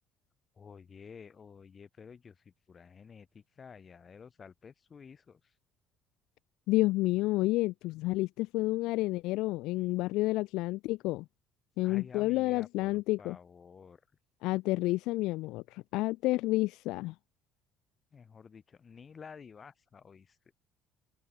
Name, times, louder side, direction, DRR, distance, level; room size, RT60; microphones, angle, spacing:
voice 1, 0.6-5.5 11.8-14.0 18.1-20.4, left 6 dB, 30° left, 7.4 m, -51 dB
voice 2, 6.7-11.3 11.8-13.4 14.4-17.1, left 20 dB, 80° left, 0.5 m, -30 dB
cardioid pair, 130°, 0 cm